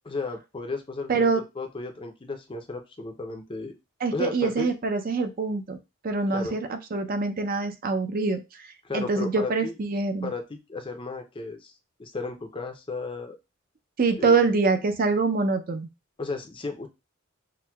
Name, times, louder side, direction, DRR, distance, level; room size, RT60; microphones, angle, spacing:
voice 1, 0.0-3.7 4.1-4.7 6.3-6.6 8.8-9.8 10.2-11.7 12.0-13.4 14.2-14.4 16.2-16.9, left 3 dB, 25° left, 5 dB, 0.5 m, -34 dB
voice 2, 1.1-1.4 4.0-5.8 6.0-8.4 8.9-10.3 14.0-15.9, right 4 dB, 45° right, 7 dB, 0.5 m, -25 dB
5.8 x 2.1 x 2.2 m, 0.25 s
head